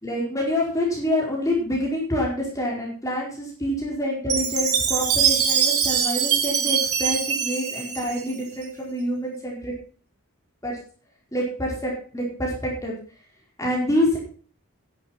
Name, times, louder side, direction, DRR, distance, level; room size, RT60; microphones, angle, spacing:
voice 1, 0.0-9.7 10.6-10.8 11.3-12.9 13.6-14.2, left 1 dB, 15° left, -3 dB, 4.5 m, -26 dB
Chime, 4.3-8.6, right 8 dB, 85° right, 2.9 m, -23 dB
12.0 x 11.0 x 4.3 m, 0.40 s
head